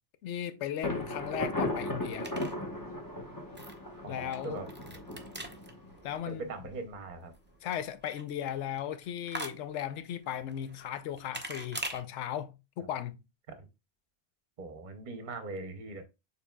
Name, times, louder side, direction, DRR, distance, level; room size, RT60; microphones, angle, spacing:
voice 1, 0.2-2.3 4.0-4.6 6.0-6.4 7.6-13.2, left 10 dB, 85° left, 0.9 m, -36 dB
Thunder, 0.8-6.5, left 1 dB, 20° left, 1.0 m, -37 dB
sound 1, 0.8-12.0, right 1 dB, 15° right, 0.4 m, -46 dB
voice 2, 4.0-4.7 6.3-7.3 13.5-13.7 14.6-16.0, right 3 dB, 45° right, 0.9 m, -41 dB
6.7 x 3.4 x 2.2 m
omnidirectional pair, 1.2 m